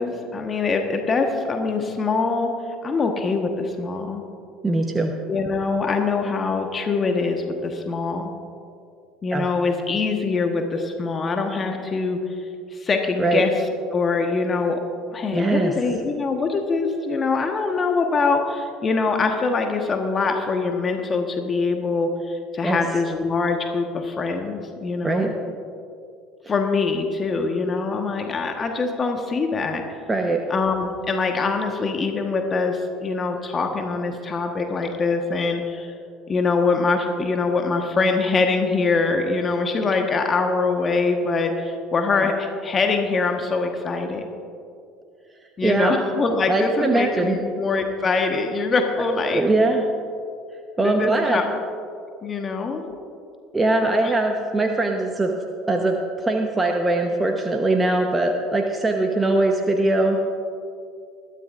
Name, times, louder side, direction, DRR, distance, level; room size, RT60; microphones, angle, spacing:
voice 1, 0.0-2.5 2.8-4.2 5.3-8.3 9.2-12.4 12.7-13.5 13.9-14.8 15.1-25.3 26.5-29.8 30.5-35.9 36.3-44.2 45.6-49.4 50.8-51.4 52.2-52.8 53.8-54.1, left 4 dB, 30° left, 4 dB, 1.3 m, -23 dB
voice 2, 4.6-5.1 9.3-9.5 13.2-13.4 15.3-15.7 22.6-22.8 25.0-25.3 30.1-30.4 42.2-42.3 45.6-46.0 46.5-47.4 49.3-49.8 50.8-51.4 53.5-55.3 55.7-60.2, right 2 dB, 20° right, 3 dB, 1.1 m, -21 dB
21.0 x 13.0 x 2.6 m, 2.4 s
figure-of-eight pair, 65°, 0 cm